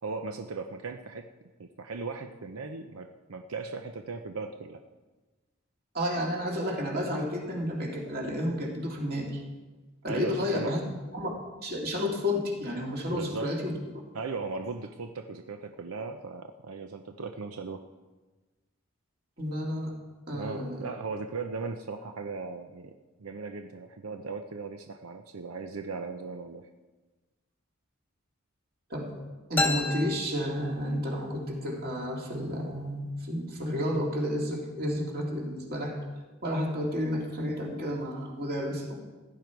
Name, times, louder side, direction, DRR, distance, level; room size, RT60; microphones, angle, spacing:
voice 1, 0.0-1.3 1.6-4.8 10.1-10.7 13.1-13.5 14.1-17.8 20.3-22.9 23.2-26.7, right 4 dB, 90° right, 6 dB, 0.7 m, -37 dB
voice 2, 5.9-9.4 10.0-10.8 11.1-11.3 11.6-13.8 19.4-19.9 20.3-20.8 28.9-29.2 29.5-36.0 36.4-39.0, left 1 dB, 45° right, -1 dB, 2.6 m, -31 dB
sound 1, 29.6-31.3, left 2 dB, 10° left, 1.1 m, -31 dB
16.0 x 10.5 x 4.6 m, 1.2 s
head